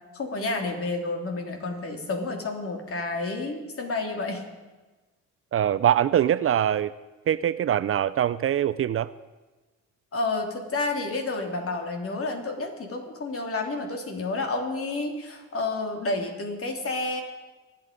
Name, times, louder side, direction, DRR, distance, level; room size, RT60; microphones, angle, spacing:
voice 1, 0.1-4.4 10.1-17.2, left 3 dB, 45° left, 3 dB, 3.0 m, -30 dB
voice 2, 5.5-6.9 7.3-9.1, right 10 dB, 45° right, 16 dB, 0.5 m, -23 dB
24.5 x 8.9 x 5.2 m, 1.2 s
cardioid pair, 90°, 30 cm